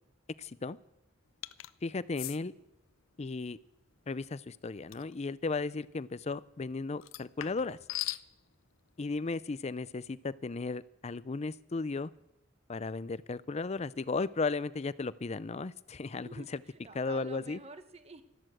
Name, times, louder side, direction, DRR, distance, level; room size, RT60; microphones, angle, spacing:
voice 1, 0.4-0.8 1.8-2.5 3.2-3.6 4.1-7.8 9.0-12.1 12.7-16.6 16.9-17.6, left 3 dB, 35° left, 18 dB, 0.5 m, -35 dB
sound 1, 1.4-1.7 2.1-2.4 4.9-5.1 7.0-8.2, left 16 dB, 90° left, 0.5 m, -39 dB
voice 2, 16.2-18.2, right 4 dB, 35° right, 10 dB, 1.3 m, -50 dB
13.0 x 12.5 x 7.7 m, 0.87 s
head